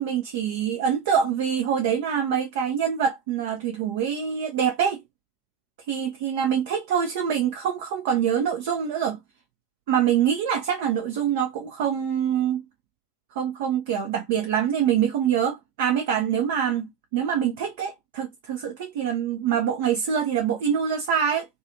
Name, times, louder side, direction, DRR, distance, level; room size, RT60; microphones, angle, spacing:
voice 1, 0.0-5.0 5.9-9.2 9.9-12.6 13.4-16.9 17.1-21.5, right 8 dB, 50° right, 0.5 m, -25 dB
2.4 x 2.4 x 2.7 m
figure-of-eight pair, 90°, 0 cm